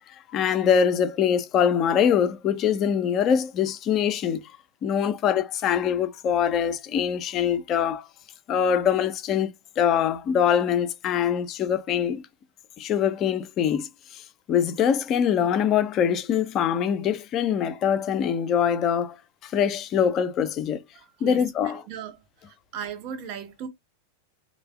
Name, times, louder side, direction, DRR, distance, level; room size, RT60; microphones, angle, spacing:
voice 1, 0.3-4.4 4.8-8.1 8.5-12.2 12.8-19.2 19.4-20.8 21.2-21.8, left 8 dB, 35° left, 0.5 m, -23 dB
voice 2, 20.9-22.2 22.5-23.7, right 8 dB, 45° right, 0.7 m, -37 dB
3.2 x 2.2 x 3.3 m
figure-of-eight pair, 90°, 0 cm